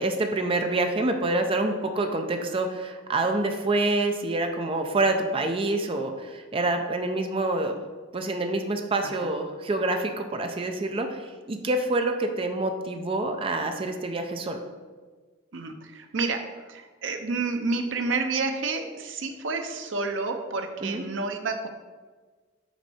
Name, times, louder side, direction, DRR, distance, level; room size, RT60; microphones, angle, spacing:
voice 1, 0.0-7.7 8.1-14.6 20.8-21.0, right 2 dB, 30° right, 5 dB, 0.5 m, -27 dB
voice 2, 15.5-16.4 16.7-21.7, right 3 dB, 75° right, 5 dB, 0.7 m, -29 dB
6.0 x 4.6 x 4.2 m, 1.4 s
head